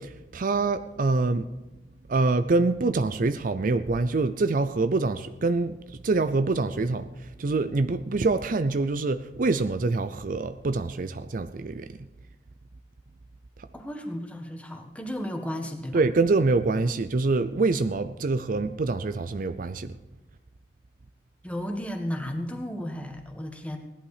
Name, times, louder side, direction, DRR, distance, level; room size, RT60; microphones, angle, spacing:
voice 1, 0.0-1.5 2.1-11.9 15.9-20.0, right 3 dB, 50° right, 10 dB, 0.5 m, -25 dB
voice 2, 13.7-16.0 21.4-23.8, equal, 10° left, 4 dB, 1.5 m, -34 dB
17.0 x 11.5 x 4.9 m, 1.0 s
head